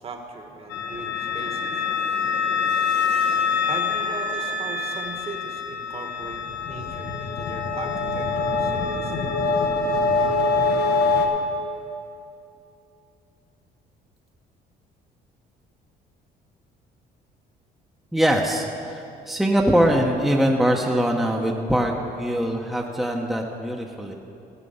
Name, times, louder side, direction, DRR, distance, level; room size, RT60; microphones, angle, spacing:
voice 1, 0.0-1.8 3.7-9.3, right 4 dB, 35° right, 4 dB, 1.3 m, -38 dB
sound 1, 0.7-11.3, left 4 dB, 80° left, 1.2 m, -24 dB
voice 2, 18.1-24.1, equal, ahead, 0 dB, 0.8 m, -22 dB
15.0 x 7.4 x 5.5 m, 2.7 s
cardioid pair, 110°, 17 cm